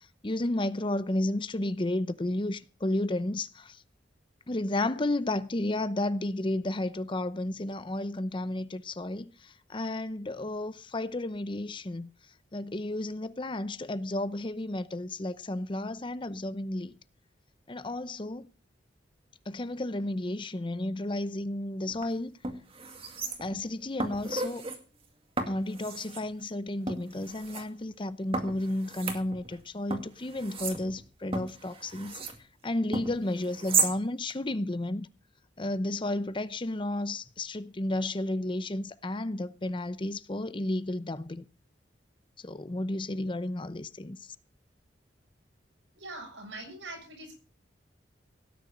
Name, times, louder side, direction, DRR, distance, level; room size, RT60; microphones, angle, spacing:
voice 1, 0.2-3.8 4.5-12.1 12.5-16.9 17.7-18.5 19.5-22.4 23.4-24.7 25.5-32.2 32.6-35.1 35.6-41.4 42.4-44.2, left 1 dB, 25° left, 0.7 m, -32 dB
sound 1, 21.9-22.0 22.4-23.7 24.0-24.8 25.4-26.3 26.9-27.6 28.3-29.6 29.9-32.4 32.9-34.0 34.3-34.4, right 4 dB, 30° right, 2.1 m, -34 dB
voice 2, 45.9-47.4, right 2 dB, 90° right, 6.8 m, -43 dB
17.5 x 9.8 x 5.2 m
head